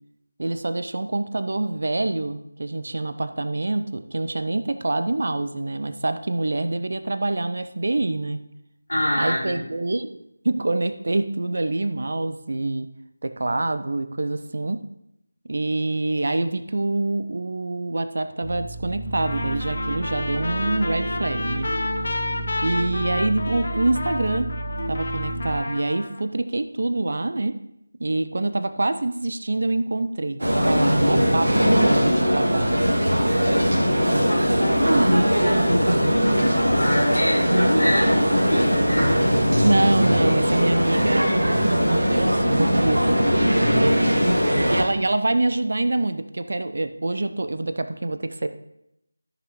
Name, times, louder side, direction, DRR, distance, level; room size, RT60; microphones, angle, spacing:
voice 1, 0.4-8.4 9.2-12.9 13.2-14.8 15.5-21.7 22.6-24.5 24.9-27.6 28.0-32.8 34.9-35.3 39.6-43.1 43.6-44.3 44.7-48.5, right 2 dB, 50° right, 10 dB, 0.6 m, -25 dB
voice 2, 8.9-9.6 33.3-33.8 34.3-39.2 43.6-44.6, equal, 70° left, -3 dB, 3.7 m, -25 dB
sound 1, 18.4-25.6, right 1 dB, 30° right, 1.1 m, -31 dB
Trumpet, 19.2-26.2, left 2 dB, 45° left, 0.9 m, -31 dB
sound 2, 30.4-44.8, equal, 65° right, 2.0 m, -20 dB
14.0 x 6.1 x 3.1 m, 0.80 s
figure-of-eight pair, 165°, 0 cm